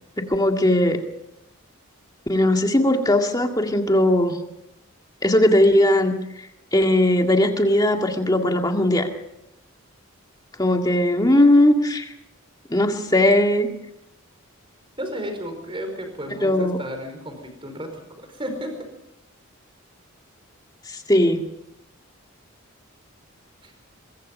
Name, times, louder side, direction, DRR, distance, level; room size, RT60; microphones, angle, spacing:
voice 1, 0.2-1.0 2.3-4.4 5.2-6.5 6.7-9.1 10.6-12.1 12.7-13.7 16.4-16.8 20.9-21.4, left 1 dB, 20° left, 4 dB, 2.0 m, -19 dB
voice 2, 15.0-18.7 23.6-23.7, equal, 25° right, 6 dB, 4.8 m, -33 dB
24.0 x 23.0 x 5.5 m, 0.82 s
head